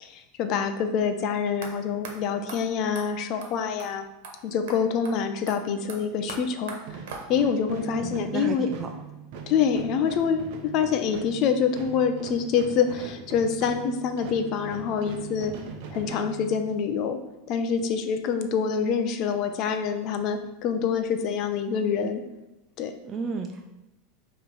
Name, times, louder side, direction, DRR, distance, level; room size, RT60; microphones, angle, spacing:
voice 1, 0.0-4.0 4.4-6.7 7.3-8.7 9.5-15.5 15.9-17.2 17.5-22.2 22.8-22.9, left 6 dB, 45° left, 7 dB, 0.6 m, -26 dB
sound 1, 1.6-1.7 2.0-2.1 2.5-2.6 3.0-3.1 3.4-3.5 3.8-3.9 4.2-4.4 4.7-4.8 5.0-5.2 5.5-7.6, right 4 dB, 80° right, 1.3 m, -40 dB
sound 2, 6.8-17.0, right 7 dB, 60° right, 0.9 m, -41 dB
voice 2, 7.7-8.9 23.0-23.6, right 5 dB, 25° right, 3 dB, 0.4 m, -33 dB
5.6 x 3.1 x 5.4 m, 0.96 s
supercardioid pair, 145°, 0 cm